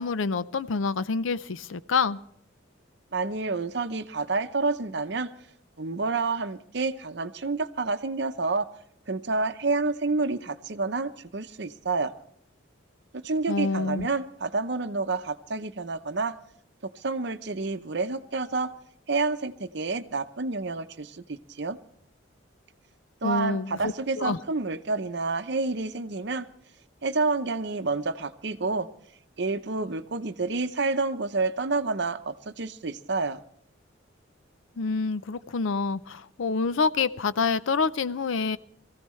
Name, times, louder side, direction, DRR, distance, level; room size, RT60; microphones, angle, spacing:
voice 1, 0.0-2.2 13.5-14.1 23.2-24.4 34.8-38.6, left 4 dB, 75° left, 15 dB, 0.5 m, -27 dB
voice 2, 3.1-5.3 5.8-8.7 9.1-12.1 13.1-16.4 17.0-18.7 19.1-21.8 23.2-26.5 27.0-28.9 29.4-33.4, right 3 dB, 55° right, 10 dB, 0.7 m, -29 dB
22.5 x 15.0 x 3.2 m, 0.65 s
head